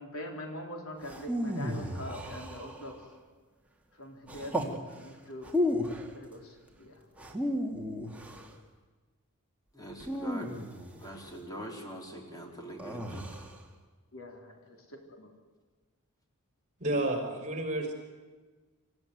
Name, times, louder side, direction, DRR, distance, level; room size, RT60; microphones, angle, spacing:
voice 1, 0.0-3.0 4.0-5.5 6.1-7.0 14.1-15.3, left 1 dB, 70° left, 3 dB, 3.8 m, -43 dB
sound 1, 1.0-3.0 4.3-4.8 5.4-6.1 7.2-8.5 10.0-11.2 12.8-13.6, left 1 dB, 5° right, 2.3 m, -34 dB
voice 2, 9.7-10.5 11.0-13.3, equal, 15° left, 1 dB, 3.9 m, -43 dB
voice 3, 16.8-17.9, right 1 dB, 35° right, 3 dB, 4.9 m, -30 dB
26.5 x 15.0 x 9.5 m, 1.4 s
head